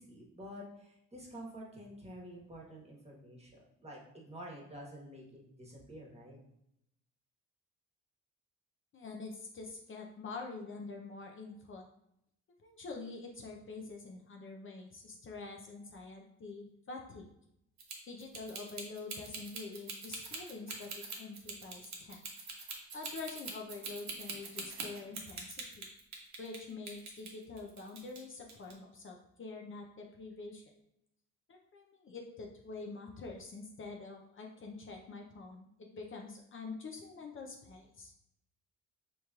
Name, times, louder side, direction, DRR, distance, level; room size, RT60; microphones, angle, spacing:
voice 1, 0.0-5.2 5.5-6.4, equal, 20° right, -3 dB, 1.3 m, -49 dB
voice 2, 8.9-11.8 12.6-17.2 18.1-22.2 22.9-25.9 26.4-30.6 31.5-38.1, left 3 dB, 45° left, 1 dB, 0.6 m, -46 dB
sound 1, 17.8-26.6 26.9-28.2 28.5-28.7, right 4 dB, 65° right, 0.9 m, -43 dB
5.0 x 3.1 x 2.4 m, 0.78 s
cardioid pair, 90°, 30 cm